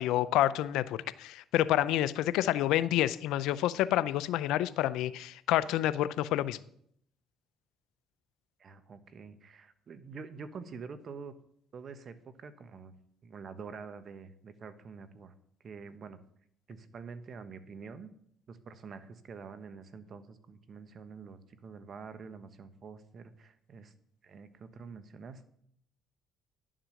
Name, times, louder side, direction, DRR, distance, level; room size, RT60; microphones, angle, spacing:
voice 1, 0.0-6.6, left 13 dB, 85° left, 16 dB, 0.5 m, -28 dB
voice 2, 8.6-11.4 11.7-12.9 13.2-15.3 15.6-16.2 16.7-18.1 18.5-23.9 24.2-25.5, right 5 dB, 50° right, 11 dB, 1.2 m, -47 dB
11.0 x 7.6 x 6.4 m, 0.67 s
cardioid pair, 80°, 0 cm